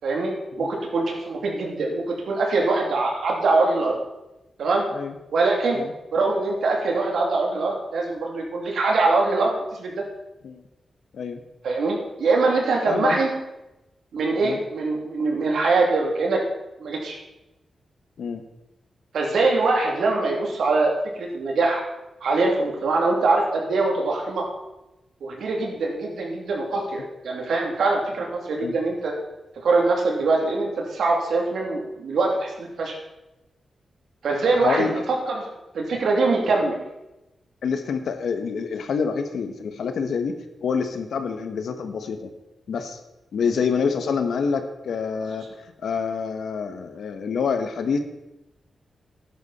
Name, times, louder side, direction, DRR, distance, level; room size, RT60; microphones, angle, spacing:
voice 1, 0.0-4.0 4.6-4.8 5.3-5.8 6.1-10.0 11.6-13.3 14.1-16.4 16.8-17.2 19.1-20.9 21.2-21.8 22.2-24.4 25.2-29.1 29.6-33.0 34.2-35.5 35.7-36.8, right 3 dB, 85° right, 0 dB, 3.1 m, -23 dB
voice 2, 12.9-13.2 14.4-14.6 18.2-18.4 28.6-28.7 34.5-34.9 37.6-40.3 40.6-42.3 42.7-43.0 43.3-45.4 45.8-48.0, left 6 dB, 85° left, 7 dB, 1.3 m, -26 dB
13.5 x 10.5 x 4.4 m, 0.96 s
wide cardioid pair, 100°, 0 cm